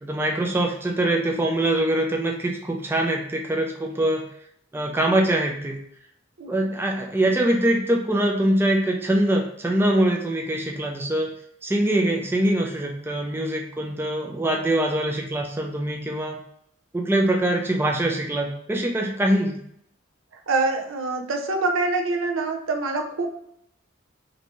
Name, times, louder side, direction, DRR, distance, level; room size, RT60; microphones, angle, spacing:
voice 1, 0.0-4.2 4.7-5.8 6.5-11.3 11.6-16.4 16.9-19.6, right 1 dB, 10° right, 1 dB, 0.3 m, -23 dB
voice 2, 20.5-23.3, right 3 dB, 80° right, 4 dB, 0.6 m, -25 dB
3.2 x 2.6 x 2.9 m, 0.70 s
head